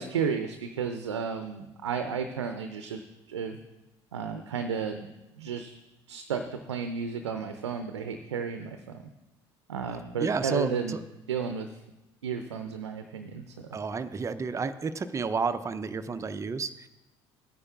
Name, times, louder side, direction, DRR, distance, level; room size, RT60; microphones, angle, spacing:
voice 1, 0.0-3.0 3.3-3.6 4.1-5.1 5.3-5.7 6.1-9.0 9.7-11.0 11.3-11.7 12.2-13.6, right 6 dB, 85° right, 8 dB, 0.6 m, -33 dB
voice 2, 10.2-11.0 13.7-16.9, right 5 dB, 20° right, 11 dB, 0.6 m, -31 dB
16.0 x 9.6 x 2.4 m, 1.0 s
figure-of-eight pair, 60°, 14 cm